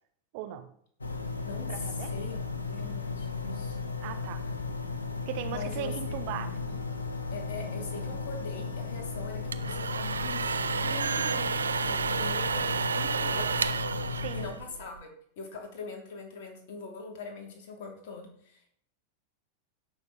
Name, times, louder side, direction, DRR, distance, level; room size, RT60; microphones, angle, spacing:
voice 1, 0.3-0.7 1.7-2.1 4.0-4.4 5.3-6.6 14.1-14.5, right 11 dB, 50° right, 8 dB, 1.2 m, -38 dB
sound 1, 1.0-14.5, left 4 dB, 75° left, 1.3 m, -35 dB
voice 2, 1.4-3.8 5.5-6.2 6.6-6.7 7.3-13.8 14.0-15.1 15.4-18.7, left 3 dB, 50° left, 2 dB, 3.4 m, -42 dB
sound 2, 9.3-15.0, right 5 dB, 75° right, 0.5 m, -31 dB
16.5 x 6.6 x 4.3 m, 0.62 s
figure-of-eight pair, 90°, 0 cm